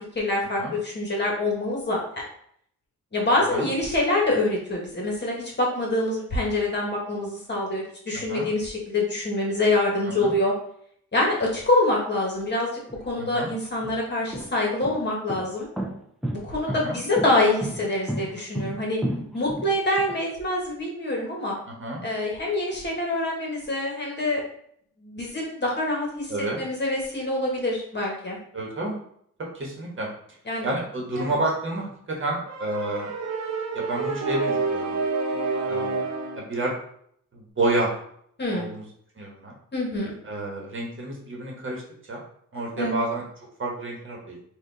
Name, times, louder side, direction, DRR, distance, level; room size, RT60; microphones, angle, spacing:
voice 1, 0.1-2.0 3.1-10.5 11.1-12.7 13.0-15.7 16.3-19.0 19.3-21.6 22.0-24.4 25.0-26.3 26.6-28.4 30.5-30.7 31.2-31.3 38.4-38.7 39.7-40.1 42.8-43.0, left 2 dB, 35° left, -2 dB, 1.4 m, -25 dB
voice 2, 8.1-8.5 10.0-10.3 13.2-13.5 16.7-17.0 21.7-22.0 26.3-26.6 28.5-28.9 29.5-30.1 30.6-33.1 33.7-34.9 35.7-36.0 36.3-36.7 37.3-37.9 38.5-38.8 39.2-39.5 40.2-41.8 42.1-42.2 42.5-43.2 43.6-44.3, right 2 dB, 40° right, -1 dB, 1.3 m, -29 dB
sound 1, 12.9-13.0 13.7-20.2, right 1 dB, ahead, 0.5 m, -32 dB
sound 2, 32.5-36.5, right 3 dB, 55° right, 1.0 m, -28 dB
4.3 x 2.5 x 3.9 m, 0.66 s
cardioid pair, 115°, 32 cm